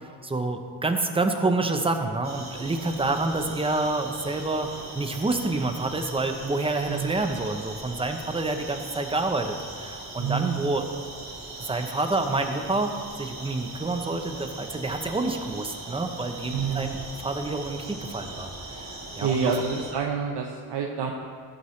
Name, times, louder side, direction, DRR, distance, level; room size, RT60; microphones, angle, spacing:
voice 1, 0.0-4.7 4.9-10.9 11.6-18.9 19.1-19.6, right 2 dB, 15° right, 5 dB, 0.8 m, -28 dB
sound 1, 2.2-19.9, right 2 dB, 30° right, 3.0 m, -40 dB
voice 2, 10.2-10.7 16.5-16.9 19.2-21.1, right 6 dB, 70° right, 0 dB, 0.9 m, -28 dB
15.5 x 8.9 x 3.2 m, 2.1 s
wide cardioid pair, 140°, 41 cm